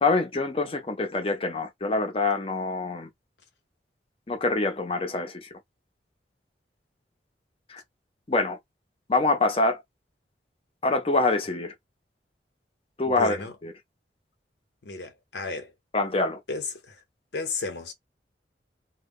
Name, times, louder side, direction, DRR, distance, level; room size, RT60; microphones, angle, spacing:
voice 1, 0.0-3.1 4.3-5.5 7.7-7.8 8.3-8.6 9.1-9.8 10.8-11.7 13.0-13.7 15.9-16.4, left 3 dB, 30° left, 0.6 m, -25 dB
voice 2, 13.1-13.5 14.8-15.7 16.5-17.0 17.3-17.9, left 4 dB, 75° left, 0.7 m, -33 dB
2.2 x 2.0 x 3.5 m
head